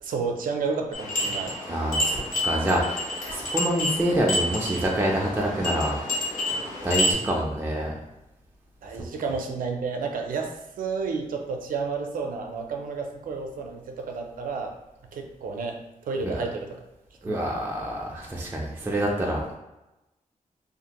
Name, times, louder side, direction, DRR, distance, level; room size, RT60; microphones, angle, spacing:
voice 1, 0.0-1.6 8.8-14.8 15.1-16.8 17.2-17.6, right 4 dB, 85° right, 3 dB, 0.4 m, -31 dB
sound 1, 0.9-7.1, left 1 dB, 80° left, 1.0 m, -29 dB
voice 2, 1.7-6.0 6.8-7.9 16.2-16.4 17.2-19.6, right 1 dB, 15° right, -2 dB, 0.3 m, -26 dB
2.5 x 2.5 x 2.8 m, 0.96 s
wide cardioid pair, 135°, 14 cm